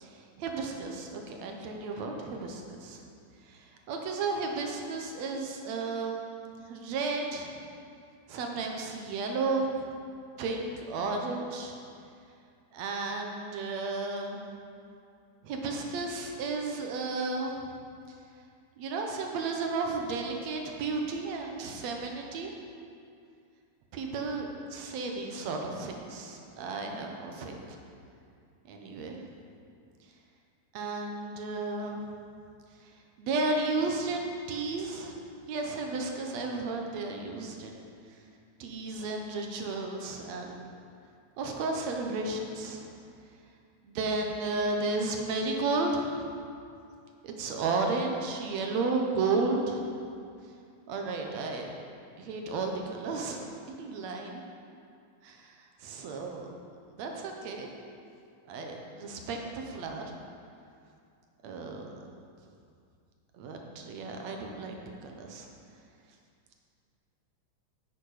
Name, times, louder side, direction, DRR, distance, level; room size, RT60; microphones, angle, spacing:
voice 1, 0.0-3.1 3.4-7.6 8.3-9.9 10.4-11.7 12.7-14.4 15.4-17.7 18.8-22.5 23.9-27.8 28.7-29.2 30.7-32.0 32.8-32.9 33.2-35.2 35.5-37.9 38.6-40.6 41.4-42.9 43.8-46.3 47.2-49.8 50.9-51.7 52.2-53.4 53.8-54.4 55.2-56.5 57.0-57.7 58.5-60.1 61.4-61.9 63.4-65.5, right 3 dB, 70° right, 2 dB, 2.1 m, -33 dB
10.0 x 8.5 x 4.9 m, 2.4 s
omnidirectional pair, 3.3 m